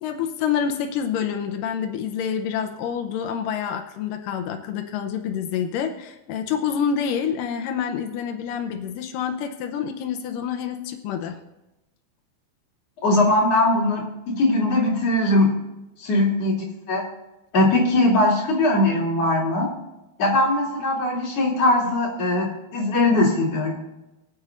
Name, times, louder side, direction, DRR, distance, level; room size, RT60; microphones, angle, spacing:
voice 1, 0.0-11.4, left 7 dB, 85° left, 5 dB, 1.9 m, -27 dB
voice 2, 13.0-15.5 16.0-17.0 17.5-19.7 20.2-23.7, left 2 dB, 40° left, -6 dB, 3.3 m, -20 dB
23.0 x 8.5 x 2.6 m, 0.97 s
omnidirectional pair, 4.8 m